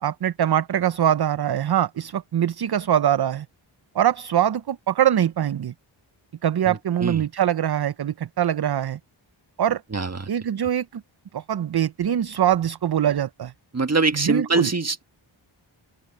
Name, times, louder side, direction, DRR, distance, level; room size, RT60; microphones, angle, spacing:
voice 1, 0.0-3.5 3.9-5.7 6.4-9.0 9.6-9.8 10.3-11.0 11.3-13.5 14.1-14.7, right 10 dB, 50° right, 0.6 m, -23 dB
voice 2, 6.7-7.3 9.9-10.3 13.7-15.0, right 3 dB, 30° right, 1.7 m, -24 dB
open air
wide cardioid pair, 85°, 49 cm